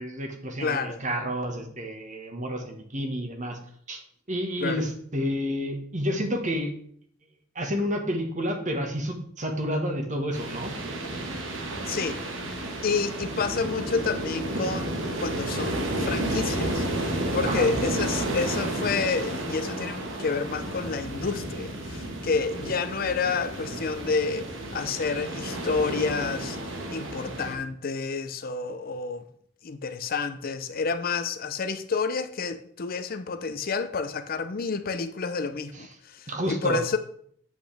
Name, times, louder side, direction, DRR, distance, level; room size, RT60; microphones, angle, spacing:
voice 1, 0.0-3.6 3.9-4.0 4.3-6.7 7.5-10.7 17.4-17.7 35.7-35.9 36.3-36.8, equal, 40° right, 1.4 m, -30 dB
voice 2, 0.6-1.0 4.6-4.9 11.9-12.2 12.8-26.6 26.9-29.2 29.6-37.0, left 4 dB, 50° left, 0.6 m, -29 dB
sound 1, 10.3-27.5, right 1 dB, 70° right, 1.5 m, -32 dB
8.1 x 8.1 x 3.4 m
head